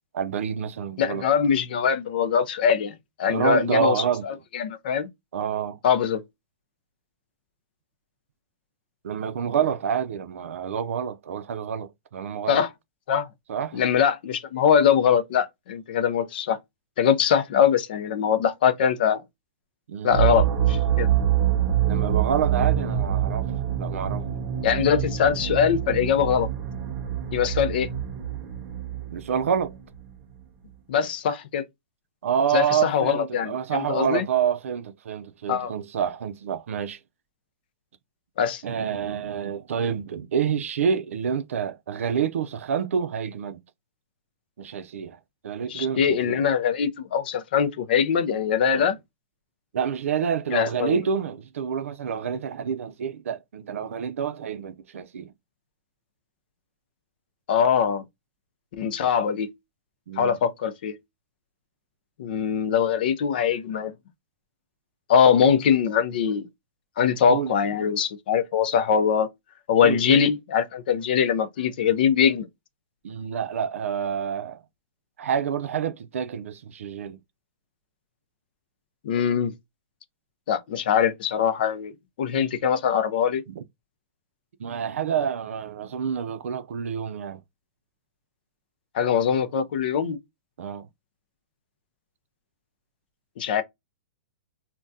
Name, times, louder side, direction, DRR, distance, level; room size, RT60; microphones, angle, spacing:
voice 1, 0.1-1.2 3.3-4.2 5.3-5.8 9.0-12.6 13.5-13.8 19.9-20.3 21.9-23.5 23.8-24.3 29.1-29.8 32.2-37.0 38.6-43.6 44.6-45.2 45.4-46.4 48.7-48.9 49.7-55.3 60.1-60.4 67.3-67.8 69.8-70.2 73.0-74.6 75.2-77.2 83.5-83.6 84.6-87.4 90.6-90.9, right 7 dB, 80° right, 0.5 m, -28 dB
voice 2, 1.0-5.1 5.8-6.2 12.5-12.7 13.1-13.3 13.7-16.6 17.0-19.2 20.0-21.1 24.6-26.5 27.3-27.9 30.9-31.6 32.5-34.2 35.5-35.7 38.4-38.6 45.7-49.0 50.5-51.0 57.5-58.0 58.7-59.5 60.2-60.9 62.2-63.9 65.1-66.5 67.0-69.3 69.7-72.5 79.0-79.5 80.5-81.9 82.2-83.4 88.9-90.2 93.4-93.6, left 7 dB, 45° left, 0.5 m, -22 dB
sound 1, 20.1-29.9, right 10 dB, 20° right, 0.4 m, -25 dB
3.5 x 2.2 x 2.6 m
hypercardioid pair, 175°, 7 cm